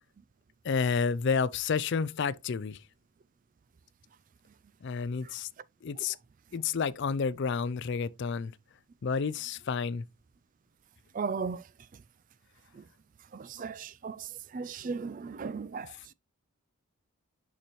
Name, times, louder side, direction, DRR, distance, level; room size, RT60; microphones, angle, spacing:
voice 1, 0.6-2.8 4.8-5.5 5.8-6.2 6.5-8.5 9.0-10.0 13.6-13.7, left 5 dB, 55° left, 0.4 m, -30 dB
voice 2, 11.1-11.6 12.8-12.9 13.3-16.1, right 5 dB, 35° right, 0.3 m, -36 dB
6.7 x 5.8 x 3.1 m
head